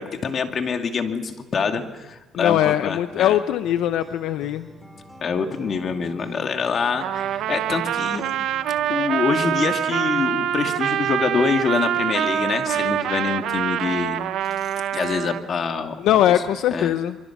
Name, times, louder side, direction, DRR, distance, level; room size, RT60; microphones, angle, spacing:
voice 1, 0.0-3.4 5.2-8.2 8.9-14.2 14.9-16.0 16.3-16.4 16.7-16.9, left 5 dB, 50° left, 5 dB, 2.4 m, -25 dB
voice 2, 2.4-4.7 16.0-17.2, left 11 dB, 80° left, 11 dB, 0.7 m, -21 dB
sound 1, 3.6-14.1, equal, ahead, 3.6 m, -48 dB
Trumpet, 7.0-15.4, right 10 dB, 75° right, 1.0 m, -25 dB
24.5 x 24.5 x 6.0 m, 1.1 s
cardioid pair, 90°, 0 cm